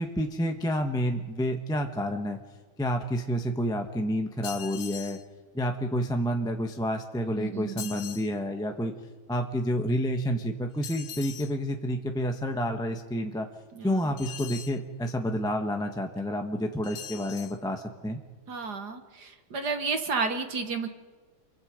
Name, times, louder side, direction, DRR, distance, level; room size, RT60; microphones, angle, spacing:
voice 1, 0.0-2.4 2.8-5.2 5.5-8.9 9.3-13.5 13.8-18.2, equal, 5° left, 4 dB, 0.9 m, -29 dB
sound 1, 4.4-5.2 7.8-8.3 10.8-11.5 14.2-14.8 16.8-17.6, left 10 dB, 70° left, 1.6 m, -41 dB
voice 2, 7.4-8.0 13.7-14.1 18.5-20.9, right 4 dB, 50° right, 7 dB, 1.8 m, -32 dB
28.5 x 23.5 x 5.2 m, 1.4 s
omnidirectional pair, 2.4 m